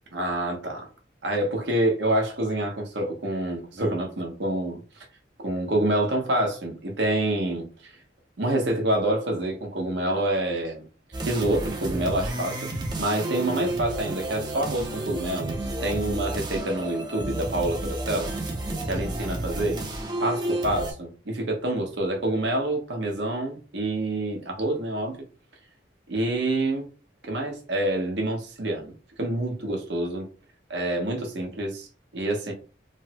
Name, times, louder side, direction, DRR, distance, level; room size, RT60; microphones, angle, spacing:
voice 1, 0.1-0.9 1.2-5.1 5.4-7.9 8.4-10.9 11.2-12.6 13.0-18.3 18.8-19.8 20.2-25.2 26.1-26.9 27.2-28.9 29.2-30.3 30.7-31.9 32.1-32.5, right 1 dB, 75° right, 0.9 m, -27 dB
sound 1, 11.1-20.9, right 1 dB, 25° right, 0.5 m, -31 dB
3.1 x 2.0 x 2.8 m
head